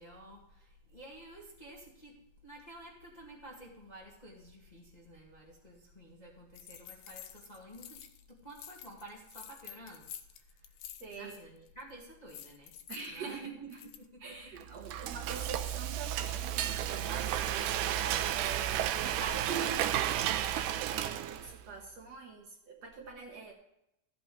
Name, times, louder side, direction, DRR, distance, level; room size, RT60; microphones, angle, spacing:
voice 1, 0.0-10.8 11.1-12.7 13.1-13.4 14.0-15.0, right 1 dB, 15° left, -4 dB, 1.8 m, -52 dB
sound 1, 6.5-8.2 8.5-11.4 11.7-11.9 12.3-14.1, left 10 dB, 85° left, 2.4 m, -49 dB
voice 2, 11.0-11.4 12.9-13.9 14.2-23.5, right 5 dB, 55° right, 1 dB, 2.3 m, -44 dB
Frying (food), 14.6-21.6, right 11 dB, 80° right, 2.1 m, -33 dB
14.5 x 8.3 x 3.4 m, 0.83 s
omnidirectional pair, 3.9 m